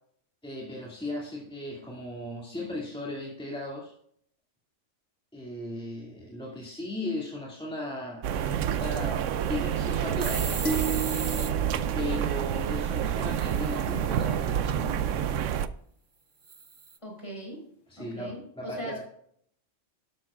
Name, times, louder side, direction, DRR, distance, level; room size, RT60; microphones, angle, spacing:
voice 1, 0.4-3.9 5.3-10.7 11.9-15.0 17.9-19.0, left 1 dB, 5° left, -4 dB, 2.3 m, -37 dB
sound 1, 8.2-15.7, right 9 dB, 85° right, 1.0 m, -28 dB
sound 2, 10.2-11.5 13.3-14.3 16.5-17.0, right 5 dB, 35° right, 0.4 m, -37 dB
sound 3, 10.6-13.1, right 4 dB, 85° left, 1.9 m, -35 dB
voice 2, 17.0-17.6 18.0-19.0, right 1 dB, 25° left, 0 dB, 4.5 m, -40 dB
12.5 x 12.0 x 2.4 m, 0.65 s
omnidirectional pair, 1.2 m